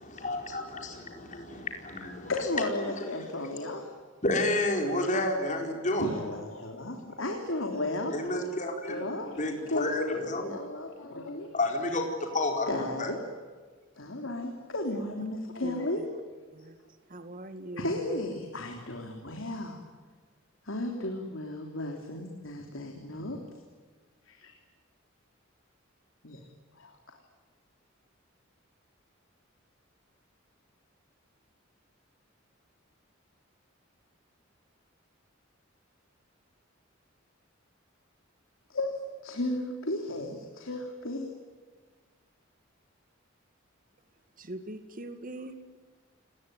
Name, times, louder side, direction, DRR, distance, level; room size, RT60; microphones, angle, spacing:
voice 1, 0.0-2.3 2.8-3.1 4.2-6.0 8.1-9.0 9.4-10.5 11.5-13.1, left 2 dB, 40° left, 2 dB, 4.6 m, -30 dB
voice 2, 2.3-3.9 6.0-8.2 8.9-11.5 12.7-13.2 14.0-16.0 17.8-19.8 20.6-23.4 24.3-24.6 26.2-26.4 26.7-27.2 38.7-41.3, left 2 dB, 80° left, 3 dB, 3.4 m, -34 dB
voice 3, 15.6-16.1 16.5-16.8 17.1-18.2 44.4-45.6, right 1 dB, 45° right, 8 dB, 2.1 m, -42 dB
30.0 x 19.5 x 9.5 m, 1.5 s
head